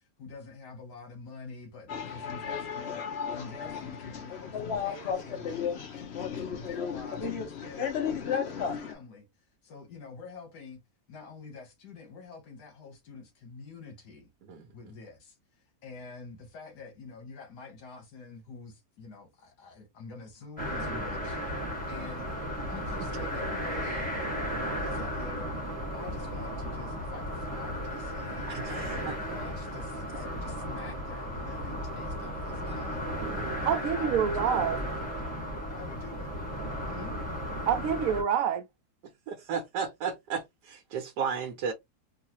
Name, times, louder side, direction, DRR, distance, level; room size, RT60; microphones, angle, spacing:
voice 1, 0.0-3.0 3.3-9.3 9.6-10.8 11.1-14.3 14.7-15.4 15.8-21.4 21.9-24.1 24.8-28.5 29.0-33.0 33.6-34.7 35.7-36.3 36.9-37.2, left 4 dB, 80° left, 1.6 m, -46 dB
sound 1, 1.9-8.9, left 7 dB, 50° left, 0.8 m, -34 dB
sound 2, 20.6-38.2, equal, 5° left, 1.2 m, -35 dB
voice 2, 28.5-29.2 33.2-33.7 39.0-41.7, right 6 dB, 85° right, 1.2 m, -35 dB
voice 3, 33.7-34.8 37.7-38.6, right 8 dB, 70° right, 0.9 m, -27 dB
3.9 x 2.3 x 2.8 m
omnidirectional pair, 1.7 m